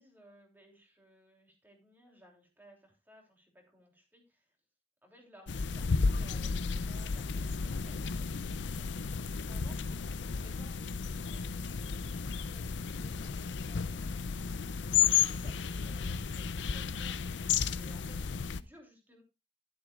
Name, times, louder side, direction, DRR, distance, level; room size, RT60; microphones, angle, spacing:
voice 1, 0.0-4.5 5.0-14.5 14.9-19.2, equal, 10° right, 1 dB, 3.2 m, -60 dB
sound 1, 5.5-18.6, left 6 dB, 85° left, 0.6 m, -33 dB
12.0 x 10.0 x 2.4 m, 0.27 s
head